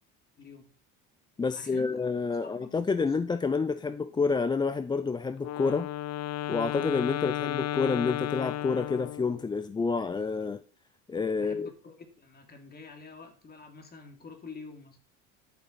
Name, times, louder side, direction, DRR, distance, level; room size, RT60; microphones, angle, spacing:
voice 1, 0.4-0.7 1.5-2.0 2.4-3.4 11.3-15.0, left 4 dB, 30° left, 2.8 m, -48 dB
voice 2, 1.4-5.9 6.5-10.6 11.1-11.7, left 4 dB, 15° left, 0.4 m, -29 dB
Wind instrument woodwind instrument, 5.4-9.5, left 13 dB, 55° left, 0.7 m, -33 dB
11.5 x 7.0 x 4.1 m
cardioid pair, 105°, 31 cm